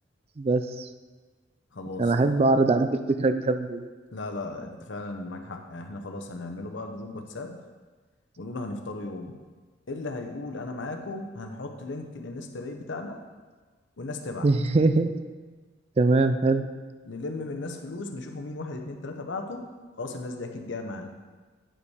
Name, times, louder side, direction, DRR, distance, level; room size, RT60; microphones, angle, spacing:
voice 1, 0.4-0.9 2.0-3.9 14.4-15.2 16.0-16.6, right 3 dB, 35° right, 9 dB, 0.4 m, -22 dB
voice 2, 1.7-2.1 4.1-7.6 8.4-9.4 9.9-13.2 14.0-14.5 17.0-21.1, left 2 dB, 85° left, 4 dB, 0.8 m, -36 dB
8.7 x 5.3 x 4.8 m, 1.4 s
head